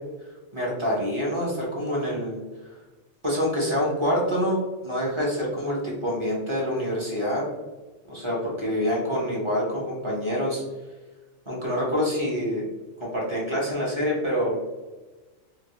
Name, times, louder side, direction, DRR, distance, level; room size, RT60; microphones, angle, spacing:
voice 1, 0.5-2.4 3.2-7.4 8.1-10.6 11.5-12.7 13.0-14.7, equal, 30° right, -5 dB, 0.7 m, -26 dB
2.9 x 2.8 x 2.8 m, 1.2 s
omnidirectional pair, 1.3 m